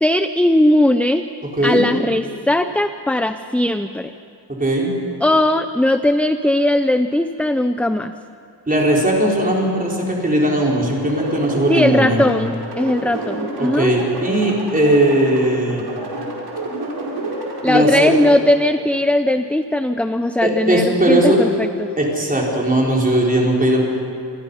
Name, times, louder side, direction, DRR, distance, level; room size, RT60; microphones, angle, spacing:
voice 1, 0.0-1.2 1.6-4.1 5.2-8.1 11.7-13.9 17.6-21.9, left 1 dB, 5° left, 9 dB, 0.5 m, -18 dB
voice 2, 4.5-4.9 8.7-12.2 13.6-15.9 17.6-18.1 20.4-21.4 22.0-23.8, right 1 dB, 20° right, -3 dB, 4.7 m, -18 dB
sound 1, 11.0-18.4, right 2 dB, 65° right, 4.9 m, -29 dB
28.0 x 21.5 x 5.6 m, 2.6 s
wide cardioid pair, 130°, 42 cm